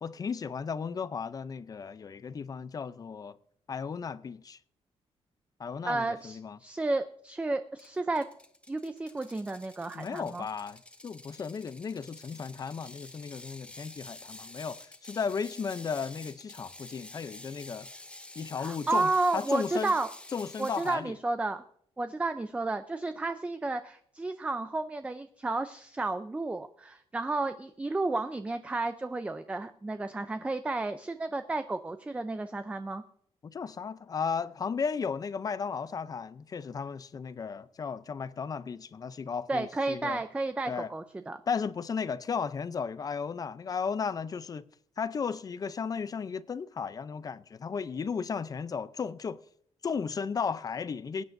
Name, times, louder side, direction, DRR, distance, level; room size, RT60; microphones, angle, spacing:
voice 1, 0.0-3.4 3.7-4.6 5.6-6.6 9.9-17.9 18.4-19.9 20.3-21.1 33.4-40.2 40.7-40.9 41.5-44.6 45.0-49.4 49.8-51.2, left 6 dB, 35° left, 0.5 m, -35 dB
voice 2, 5.8-8.3 8.7-10.5 18.6-20.1 20.6-21.6 22.0-33.0 39.5-41.4, right 2 dB, 10° right, 0.5 m, -32 dB
Ratchet pawl, 7.8-21.0, left 2 dB, 10° left, 0.8 m, -49 dB
22.5 x 9.4 x 2.6 m
cardioid pair, 145°, 11 cm